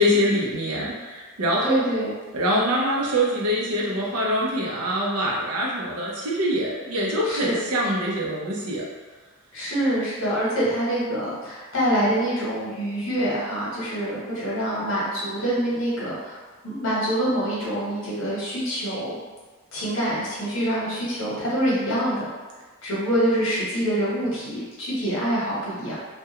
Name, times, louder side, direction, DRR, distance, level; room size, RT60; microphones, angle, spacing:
voice 1, 0.0-1.9 2.3-8.8, equal, 85° right, -3 dB, 0.6 m, -24 dB
voice 2, 1.6-2.1 7.2-7.6 9.5-16.4 16.6-19.2 19.7-22.3 22.8-26.0, equal, 60° left, -7 dB, 0.9 m, -25 dB
2.3 x 2.2 x 2.8 m, 1.3 s
head